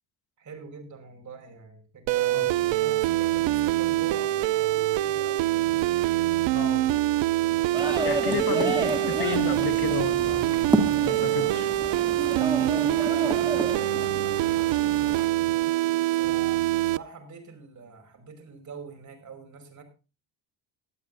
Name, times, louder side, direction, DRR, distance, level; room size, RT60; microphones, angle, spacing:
voice 1, 0.4-5.8 8.1-8.4 11.3-15.3 16.1-19.8, right 5 dB, 40° right, 5.4 m, -44 dB
sound 1, 2.1-17.0, right 15 dB, 75° right, 0.7 m, -25 dB
voice 2, 6.5-6.9 8.0-10.5 11.0-11.6, left 9 dB, 55° left, 1.3 m, -32 dB
sound 2, 7.7-15.3, right 1 dB, 10° right, 2.4 m, -31 dB
18.5 x 12.0 x 2.6 m
cardioid pair, 130°, 44 cm